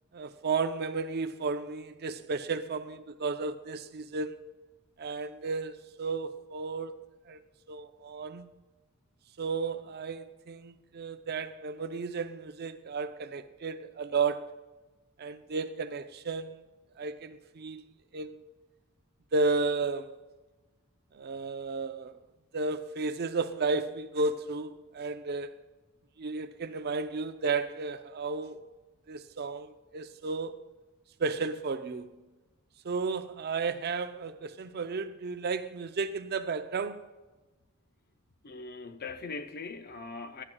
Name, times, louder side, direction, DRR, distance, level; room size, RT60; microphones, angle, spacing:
voice 1, 0.1-4.3 5.0-7.0 7.3-7.4 7.7-8.5 9.4-14.5 15.2-16.6 17.0-17.9 18.1-18.4 19.3-20.2 21.1-22.2 22.5-25.5 26.2-28.6 29.1-30.6 31.2-32.1 32.8-37.0, right 4 dB, 50° right, 0.5 m, -33 dB
voice 2, 38.4-40.4, left 4 dB, 45° left, 0.6 m, -40 dB
15.5 x 11.0 x 2.3 m
head